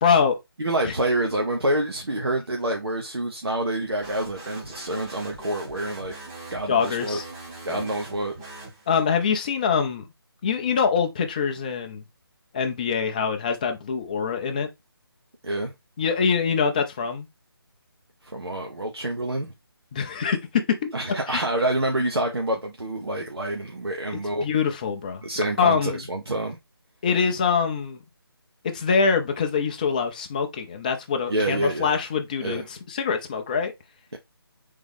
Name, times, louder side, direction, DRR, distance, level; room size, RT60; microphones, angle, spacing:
voice 1, 0.0-0.4 0.8-0.9 6.7-7.2 7.7-7.8 8.9-10.1 10.4-12.0 12.5-14.7 16.0-17.3 19.9-20.9 21.3-21.4 24.4-25.2 25.6-26.1 27.0-28.0 28.6-33.7, left 6 dB, 20° left, 0.5 m, -24 dB
voice 2, 0.6-6.1 6.5-7.2 7.6-8.4 15.4-15.7 18.2-19.5 20.9-24.5 25.2-26.6 31.3-32.0 32.4-32.6, right 1 dB, 85° right, 1.0 m, -27 dB
sound 1, 4.0-9.2, right 2 dB, 15° right, 0.8 m, -42 dB
3.9 x 3.7 x 3.4 m
figure-of-eight pair, 155°, 13 cm